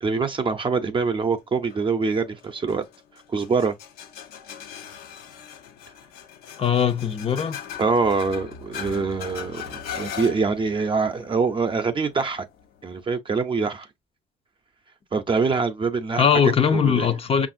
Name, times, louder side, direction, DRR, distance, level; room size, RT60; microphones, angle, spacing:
voice 1, 0.0-2.8 3.3-3.7 7.8-12.4 12.8-13.9 15.1-16.3 16.7-17.1, right 4 dB, 30° right, 0.6 m, -24 dB
sound 1, 1.7-13.0, left 8 dB, 70° left, 0.8 m, -40 dB
voice 2, 6.6-7.6 16.2-17.5, left 7 dB, 35° left, 0.6 m, -20 dB
5.3 x 2.5 x 2.5 m
supercardioid pair, 80°, 17 cm